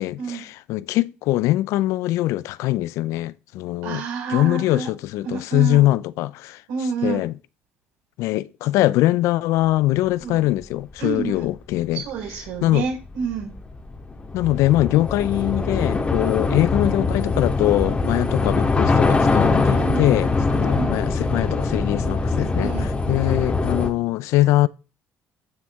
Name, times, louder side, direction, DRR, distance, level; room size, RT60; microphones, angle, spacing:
voice 1, 0.0-4.0 4.3-6.6 7.0-7.3 8.2-12.0 12.6-12.9 14.3-24.7, left 16 dB, 80° left, 0.4 m, -22 dB
voice 2, 3.8-4.9 5.2-5.9 6.7-7.3 10.2-10.4 11.0-11.5 11.9-13.5 19.7-20.1 20.6-20.9 22.6-22.9, right 5 dB, 90° right, 4.5 m, -29 dB
Train / Subway metro underground, 10.5-10.6 10.9-23.9, left 3 dB, 25° left, 1.7 m, -23 dB
8.6 x 7.2 x 3.5 m
cardioid pair, 100°, 5 cm